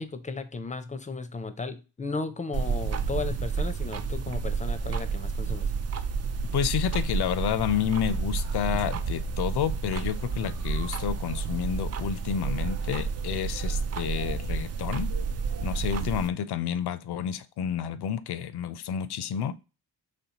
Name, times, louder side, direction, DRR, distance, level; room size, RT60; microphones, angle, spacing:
voice 1, 0.0-5.7, left 3 dB, 20° left, 0.5 m, -35 dB
sound 1, 2.5-16.3, right 5 dB, 40° right, 0.4 m, -30 dB
voice 2, 6.5-15.1 15.6-19.5, left 9 dB, 65° left, 0.5 m, -30 dB
4.2 x 3.1 x 2.9 m
cardioid pair, 65°, 42 cm